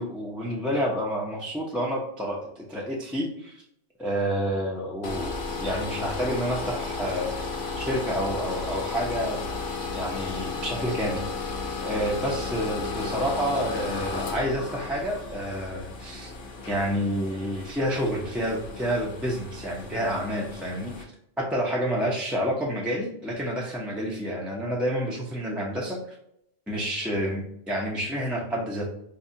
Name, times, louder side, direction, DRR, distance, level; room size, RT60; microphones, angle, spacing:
voice 1, 0.0-3.6 4.0-9.4 9.9-11.3 11.8-16.3 16.7-20.9 21.4-26.0 26.7-28.9, equal, ahead, -3 dB, 0.5 m, -29 dB
sound 1, 5.0-21.0, left 4 dB, 55° left, 0.8 m, -34 dB
5.4 x 2.3 x 2.7 m, 0.74 s
omnidirectional pair, 1.3 m